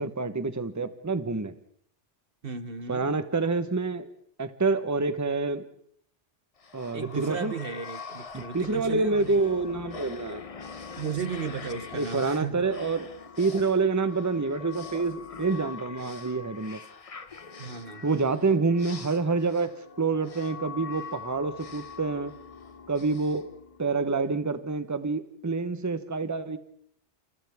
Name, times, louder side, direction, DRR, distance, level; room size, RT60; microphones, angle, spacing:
voice 1, 0.0-1.5 2.9-4.1 4.4-5.6 6.7-7.5 8.3-10.4 11.9-13.1 13.4-16.8 18.0-19.7 20.0-22.3 22.9-23.4 23.8-26.6, right 3 dB, 15° right, 11 dB, 1.0 m, -27 dB
voice 2, 2.4-3.1 6.9-9.4 10.9-12.6 17.6-18.2, right 6 dB, 55° right, 11 dB, 1.2 m, -35 dB
sound 1, 6.6-24.2, left 5 dB, 35° left, 0.9 m, -43 dB
28.5 x 28.0 x 3.6 m, 0.67 s
omnidirectional pair, 1.2 m